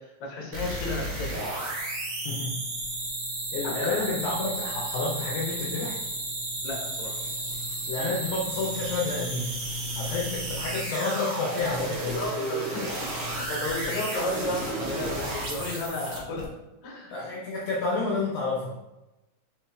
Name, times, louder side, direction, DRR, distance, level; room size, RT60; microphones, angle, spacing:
voice 1, 0.0-1.3 3.6-4.0 6.6-7.2 12.2-16.5 16.8-17.1, left 2 dB, 60° left, -3 dB, 1.2 m, -33 dB
sound 1, 0.5-16.4, right 1 dB, 75° right, 1.1 m, -33 dB
voice 2, 2.2-2.6 3.5-6.0 7.8-9.5 10.0-12.2 17.1-18.8, left 3 dB, 75° left, -3 dB, 1.5 m, -30 dB
4.4 x 4.3 x 2.3 m, 1.0 s
omnidirectional pair, 3.5 m